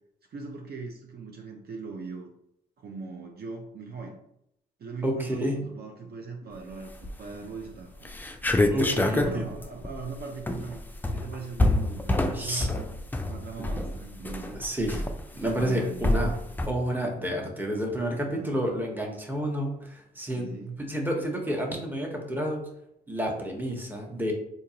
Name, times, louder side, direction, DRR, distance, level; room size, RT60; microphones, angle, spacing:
voice 1, 0.3-2.3 2.8-4.2 4.8-8.2 9.1-10.8 11.1-12.8 13.2-14.6 15.5-16.2 18.2-18.6 20.3-20.8, right 4 dB, 50° right, 1 dB, 0.6 m, -39 dB
voice 2, 5.0-5.6 8.7-9.5 12.3-12.7 14.5-15.0 15.3-16.3 16.7-20.5 20.8-22.6 23.1-24.3, equal, 10° right, 0 dB, 1.1 m, -29 dB
sound 1, 6.9-7.4 7.7-7.8 8.0-16.7, left 1 dB, 10° left, 0.4 m, -27 dB
3.7 x 2.7 x 2.8 m, 0.77 s
hypercardioid pair, 50°, 21 cm